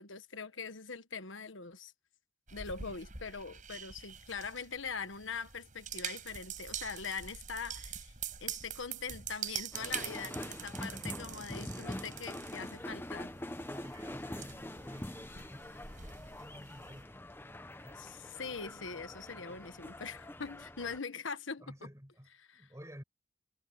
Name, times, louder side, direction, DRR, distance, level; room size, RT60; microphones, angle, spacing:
voice 1, 0.0-1.9 2.5-8.1 8.4-13.3 18.0-21.6 22.4-22.7, left 5 dB, 80° left, 1.3 m, -42 dB
sound 1, 2.5-17.0, right 8 dB, 45° right, 5.9 m, -45 dB
sound 2, 9.7-21.0, left 1 dB, 10° left, 0.9 m, -44 dB
voice 2, 10.5-11.0 13.6-18.1 21.6-23.0, equal, 15° right, 7.3 m, -53 dB
head